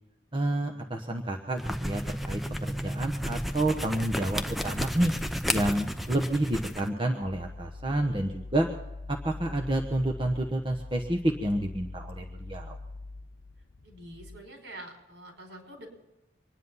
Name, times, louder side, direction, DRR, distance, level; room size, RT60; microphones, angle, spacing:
voice 1, 0.3-5.1 5.5-8.7 9.1-12.8, right 1 dB, 25° right, 3 dB, 1.1 m, -29 dB
sound 1, 1.5-6.9, equal, ahead, 0.7 m, -32 dB
sound 2, 7.2-14.4, left 2 dB, 65° left, 0.8 m, -43 dB
voice 2, 13.8-15.9, right 1 dB, 70° right, 3 dB, 5.1 m, -46 dB
24.5 x 10.5 x 5.6 m, 0.98 s
head